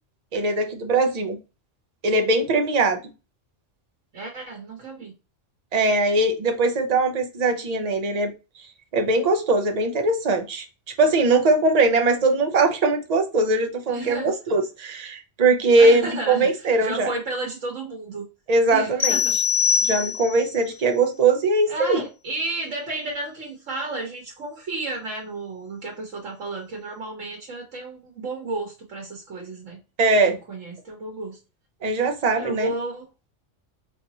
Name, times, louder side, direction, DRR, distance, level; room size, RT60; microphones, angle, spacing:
voice 1, 0.3-1.4 2.0-3.0 5.7-8.3 8.9-10.7 11.0-17.1 18.5-19.2 19.8-22.0 30.0-30.4 31.8-32.7, right 2 dB, 40° right, 5 dB, 0.7 m, -21 dB
voice 2, 4.1-5.1 12.0-12.1 13.9-14.3 15.8-18.3 18.7-19.4 21.7-29.8 30.2-31.4 32.4-33.1, right 2 dB, 90° right, 0 dB, 1.4 m, -32 dB
sound 1, 19.0-20.5, left 7 dB, 30° left, 0.9 m, -22 dB
4.0 x 3.3 x 2.8 m, 0.29 s
omnidirectional pair, 1.3 m